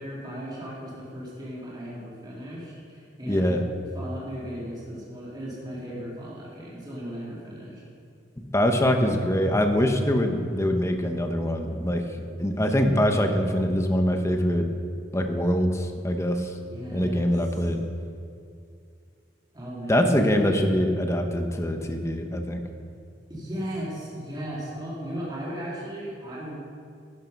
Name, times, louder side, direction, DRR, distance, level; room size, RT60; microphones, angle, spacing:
voice 1, 0.0-3.6 3.9-7.8 16.7-17.3 19.5-20.6 23.3-26.6, equal, 20° right, -6 dB, 2.5 m, -36 dB
voice 2, 3.3-3.6 8.4-12.0 12.4-14.7 15.1-16.5 16.9-17.8 19.9-22.6, equal, 15° left, 5 dB, 1.0 m, -24 dB
12.0 x 10.5 x 5.4 m, 2.3 s
head